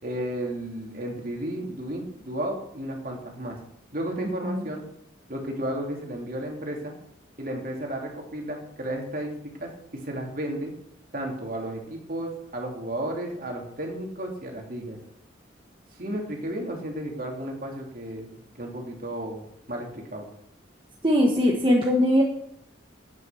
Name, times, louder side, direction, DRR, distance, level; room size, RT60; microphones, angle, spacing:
voice 1, 0.0-3.6 3.9-4.8 5.3-6.9 7.4-10.7 11.1-15.0 15.9-19.4 19.7-20.3, right 1 dB, 45° right, 0 dB, 3.0 m, -33 dB
voice 2, 21.0-22.2, left 1 dB, 25° right, -1 dB, 1.5 m, -20 dB
9.7 x 9.4 x 7.1 m, 0.72 s
head